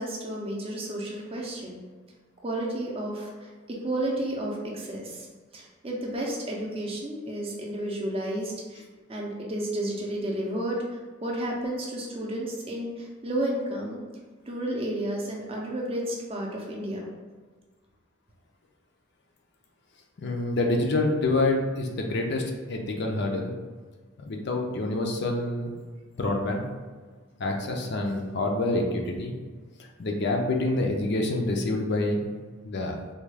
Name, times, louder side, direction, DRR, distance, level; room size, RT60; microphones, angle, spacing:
voice 1, 0.0-1.8 2.4-5.3 5.5-8.8 9.1-10.8 11.2-14.0 14.5-17.1, right 1 dB, 25° right, -2 dB, 0.5 m, -32 dB
voice 2, 20.2-22.4 22.7-23.5 24.2-25.8 26.2-26.7 27.4-29.3 30.0-32.3 32.6-33.0, left 2 dB, 50° left, 2 dB, 0.4 m, -27 dB
3.4 x 2.3 x 3.2 m, 1.4 s
head